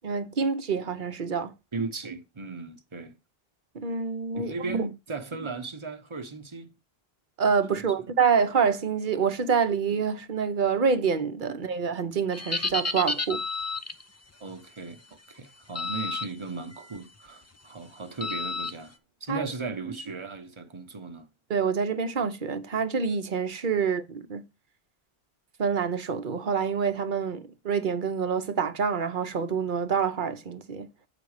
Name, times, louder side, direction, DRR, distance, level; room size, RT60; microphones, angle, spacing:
voice 1, 0.0-1.5 3.7-4.5 7.4-13.4 19.3-19.5 21.5-24.4 25.6-30.9, right 6 dB, 55° right, 1.0 m, -27 dB
voice 2, 1.7-3.2 4.3-6.7 7.7-8.1 11.5-11.6 14.4-15.0 15.3-21.3 23.8-23.9, right 4 dB, 30° right, 1.1 m, -36 dB
sound 1, 12.3-14.0 15.8-16.3 16.7-17.0 18.2-18.7, left 3 dB, 20° left, 0.5 m, -31 dB
8.3 x 5.1 x 4.8 m
omnidirectional pair, 1.0 m